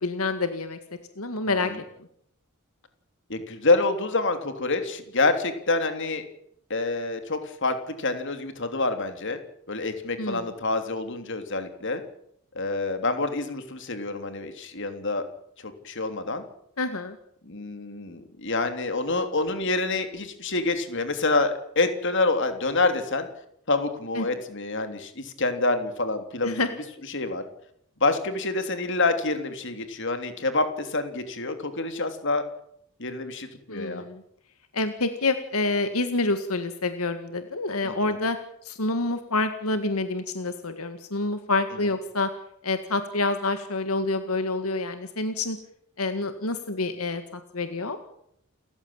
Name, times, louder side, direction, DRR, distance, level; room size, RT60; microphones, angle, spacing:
voice 1, 0.0-0.8 1.2-1.7 10.2-10.5 16.8-17.2 24.2-24.3 26.4-26.7 33.7-34.2 34.7-38.4 38.6-42.3 42.6-45.6 46.0-48.0, left 3 dB, 85° left, 9 dB, 1.9 m, -27 dB
voice 2, 1.4-1.8 3.3-6.2 6.7-9.4 9.7-12.0 12.5-15.2 15.6-16.4 17.4-23.3 23.7-26.6 27.1-27.4 28.0-32.4 33.0-34.0 37.8-38.2 41.8-41.9, left 3 dB, 60° left, 8 dB, 3.3 m, -27 dB
29.0 x 15.0 x 8.9 m, 0.72 s
head